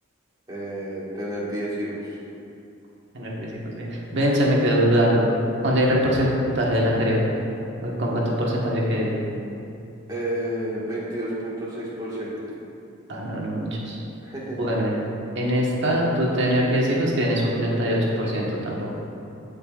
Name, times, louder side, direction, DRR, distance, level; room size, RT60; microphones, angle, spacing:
voice 1, 0.5-2.2 10.1-12.3 14.2-14.6, right 1 dB, 20° right, -7 dB, 1.8 m, -30 dB
voice 2, 3.1-5.3 5.6-7.2 7.8-9.2 13.1-14.0 14.5-15.0 15.3-19.0, equal, 60° right, -4 dB, 1.5 m, -23 dB
15.5 x 5.4 x 2.5 m, 2.7 s
head